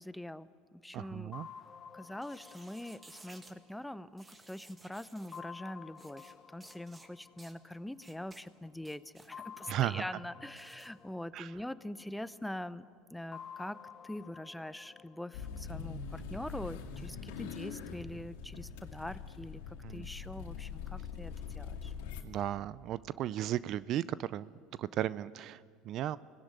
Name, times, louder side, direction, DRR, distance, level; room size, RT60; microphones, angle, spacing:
voice 1, 0.0-1.3 1.9-13.8 14.0-21.9, left 1 dB, 5° left, 15 dB, 0.8 m, -44 dB
voice 2, 0.9-1.5 9.7-10.0 11.3-11.5 19.8-20.1 22.2-24.5 24.8-26.2, right 12 dB, 55° right, 18 dB, 0.5 m, -35 dB
sound 1, 1.3-4.6 5.3-8.2 9.3-12.4 13.3-16.4, left 7 dB, 35° left, 1.0 m, -52 dB
sound 2, 2.1-3.6 4.2-5.4 6.0-6.3 6.6-7.1 7.4-7.6 8.0-8.4 8.8-9.3 10.5-10.9, right 2 dB, 20° right, 2.1 m, -57 dB
sound 3, 15.3-22.2, left 6 dB, 80° left, 2.2 m, -43 dB
24.5 x 18.0 x 9.8 m, 2.2 s
hypercardioid pair, 85°, 0 cm